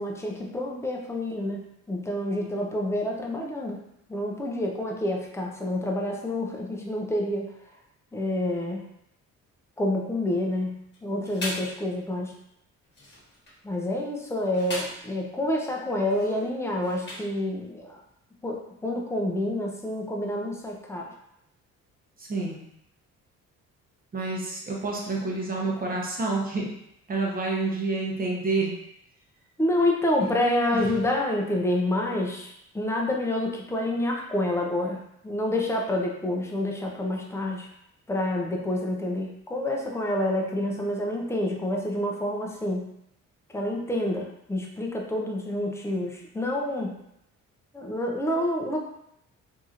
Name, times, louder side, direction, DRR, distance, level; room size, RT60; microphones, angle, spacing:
voice 1, 0.0-3.8 4.1-7.5 8.1-8.9 9.8-12.3 13.6-18.0 18.4-21.1 29.6-37.7 38.1-42.9 43.5-46.9 47.7-48.8, left 1 dB, 10° left, -1 dB, 0.5 m, -28 dB
sound 1, 10.9-11.8 12.8-13.6 14.3-15.1 16.0-17.4, left 1 dB, 35° left, 1.3 m, -38 dB
voice 2, 22.2-22.6 24.1-26.7 27.1-28.7 30.2-30.3 30.7-30.9, right 3 dB, 30° right, -2 dB, 0.8 m, -28 dB
2.9 x 2.7 x 2.4 m, 0.78 s
cardioid pair, 90°, 30 cm